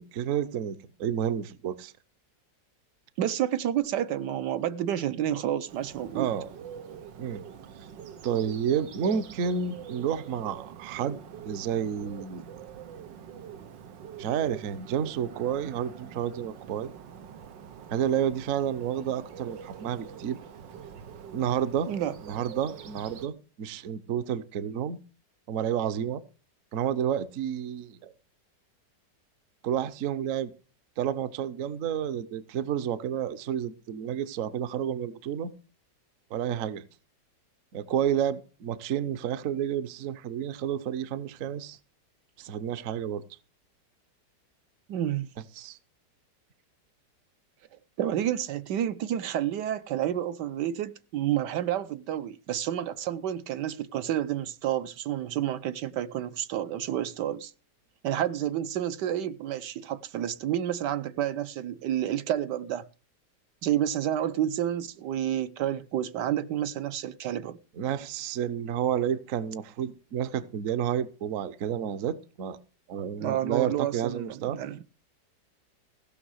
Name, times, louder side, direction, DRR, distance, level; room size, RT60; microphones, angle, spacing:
voice 1, 0.0-1.9 6.2-6.5 7.2-7.4 8.2-11.2 11.5-12.4 14.2-16.9 17.9-20.4 21.3-21.9 22.2-23.3 23.6-25.0 25.5-26.2 26.7-28.1 29.6-30.5 31.0-35.5 36.3-36.8 37.7-41.8 42.4-43.2 45.6-45.8 67.8-72.6 72.9-74.6, right 9 dB, 55° right, 1.0 m, -30 dB
voice 2, 3.2-6.3 21.9-22.1 44.9-45.3 48.0-57.5 58.0-62.8 63.6-67.6 73.2-74.8, right 11 dB, 75° right, 1.3 m, -30 dB
Bird, 5.7-23.3, right 8 dB, 90° right, 1.8 m, -45 dB
16.0 x 6.1 x 6.3 m
omnidirectional pair, 1.9 m